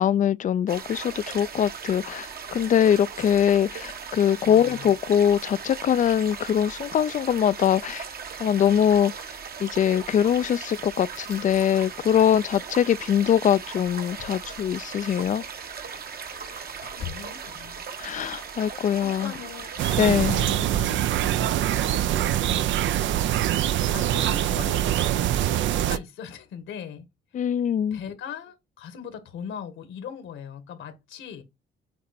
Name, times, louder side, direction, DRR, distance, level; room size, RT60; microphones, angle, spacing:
voice 1, 0.0-2.3 2.5-8.0 8.4-9.1 9.6-15.4 18.0-19.3 20.0-20.3 27.3-28.0, left 9 dB, 40° left, 0.4 m, -22 dB
sound 1, 0.7-20.6, right 6 dB, 50° right, 1.1 m, -38 dB
voice 2, 4.4-4.9 16.9-17.8 19.0-21.5 23.8-24.9 25.4-27.0 27.3-27.6 27.9-31.4, left 7 dB, 80° left, 1.7 m, -40 dB
sound 2, 10.5-11.7 13.7-14.8 15.4-15.5 16.0-17.3, left 9 dB, 65° left, 1.4 m, -44 dB
sound 3, 19.8-26.0, right 12 dB, 70° right, 0.5 m, -24 dB
8.2 x 2.9 x 4.3 m
cardioid pair, 90°, 20 cm